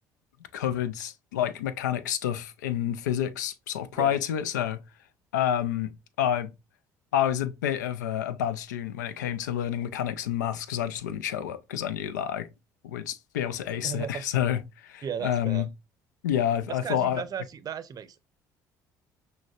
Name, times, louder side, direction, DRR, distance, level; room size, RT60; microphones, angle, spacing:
voice 1, 0.5-4.8 5.3-6.5 7.1-12.5 12.8-15.6 16.2-17.2, left 10 dB, 90° left, 0.4 m, -29 dB
voice 2, 13.8-14.2 15.0-15.7 16.7-18.2, right 8 dB, 45° right, 0.6 m, -35 dB
6.1 x 2.2 x 2.4 m
hypercardioid pair, 65°, 9 cm